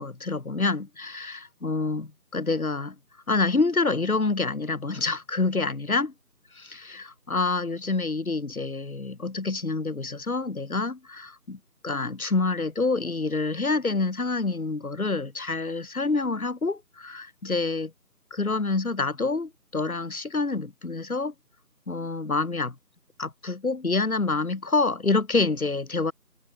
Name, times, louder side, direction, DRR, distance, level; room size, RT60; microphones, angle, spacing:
voice 1, 0.0-2.9 3.3-6.1 6.5-17.9 18.3-21.3 21.9-22.7 23.2-26.1, left 3 dB, 60° left, 1.0 m, -27 dB
figure-of-eight pair, 175°, 48 cm